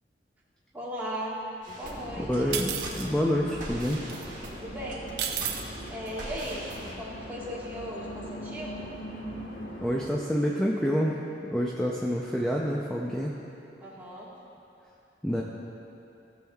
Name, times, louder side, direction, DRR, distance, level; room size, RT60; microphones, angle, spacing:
voice 1, 0.7-1.4 1.8-2.6 4.5-5.2 5.9-6.7 7.0-8.8 13.8-14.3 15.3-15.4, equal, 10° right, -7 dB, 1.5 m, -37 dB
sound 1, 1.6-6.9, right 1 dB, 45° right, 1.5 m, -42 dB
sound 2, 1.8-10.1, equal, 90° left, 1.2 m, -41 dB
voice 2, 2.2-2.7 3.0-4.0 9.8-11.2 11.4-13.4 15.2-15.4, equal, 5° left, -3 dB, 0.5 m, -27 dB
sound 3, 2.5-3.1 4.1-4.3 5.2-5.6, right 8 dB, 70° right, 0.6 m, -31 dB
17.0 x 7.2 x 2.3 m, 2.8 s
head